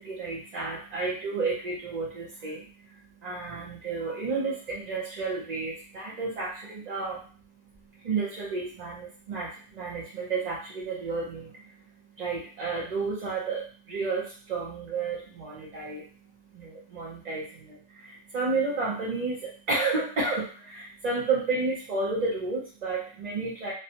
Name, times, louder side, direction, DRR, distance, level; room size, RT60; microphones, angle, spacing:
voice 1, 0.0-23.7, right 3 dB, 45° right, -5 dB, 0.5 m, -32 dB
3.0 x 2.0 x 2.7 m, 0.40 s
omnidirectional pair, 1.3 m